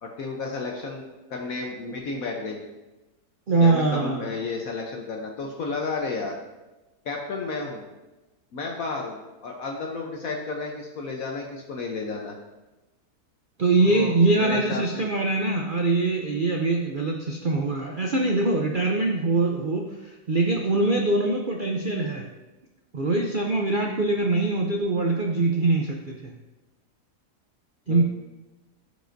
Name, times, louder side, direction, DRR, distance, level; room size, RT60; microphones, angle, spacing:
voice 1, 0.0-2.6 3.6-6.3 7.0-7.8 8.5-12.4 13.8-15.1 27.9-28.0, left 3 dB, 65° left, 0 dB, 1.2 m, -32 dB
voice 2, 3.5-4.3 13.6-22.3 22.9-26.3 27.9-28.0, right 2 dB, 65° right, 1 dB, 0.5 m, -23 dB
14.5 x 5.0 x 2.6 m, 1.1 s
omnidirectional pair, 1.7 m